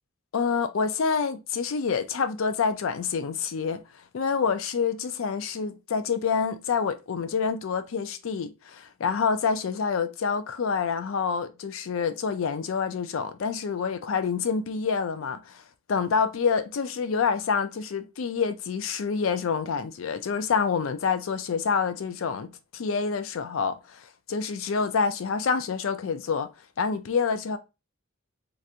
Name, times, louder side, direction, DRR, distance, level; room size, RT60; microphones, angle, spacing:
voice 1, 0.3-3.8 4.1-15.6 15.9-26.5 26.8-27.6, left 5 dB, 70° left, 0.4 m, -27 dB
3.3 x 2.9 x 2.4 m
head